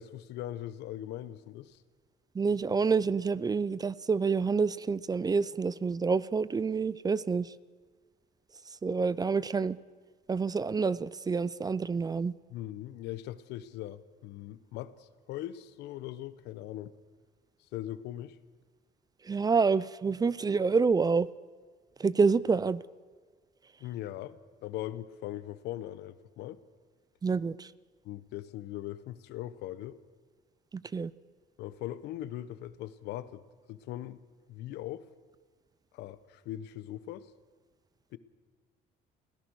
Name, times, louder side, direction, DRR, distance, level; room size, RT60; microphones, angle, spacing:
voice 1, 0.0-1.8 12.5-17.0 17.7-18.4 23.8-26.6 28.0-30.0 31.6-33.4 33.7-34.2 34.5-35.1 35.9-37.3 38.1-38.2, left 13 dB, 85° left, 15 dB, 1.0 m, -40 dB
voice 2, 2.3-7.5 8.8-9.8 10.3-12.3 19.3-21.3 22.0-22.8 27.2-27.7 30.7-31.1, right 5 dB, 20° right, 19 dB, 0.5 m, -28 dB
26.5 x 17.0 x 6.4 m, 1.5 s
cardioid pair, 110°, 17 cm